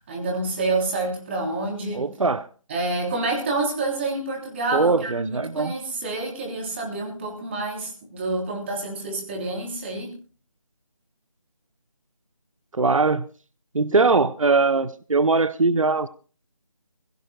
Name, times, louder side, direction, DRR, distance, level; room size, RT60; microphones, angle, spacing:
voice 1, 0.1-2.1 2.7-10.2, right 2 dB, 20° right, 1 dB, 3.4 m, -28 dB
voice 2, 1.9-2.5 4.7-5.7 12.7-13.3 13.7-16.1, right 3 dB, 75° right, 16 dB, 0.7 m, -21 dB
22.5 x 16.5 x 2.3 m, 0.37 s
figure-of-eight pair, 165°, 17 cm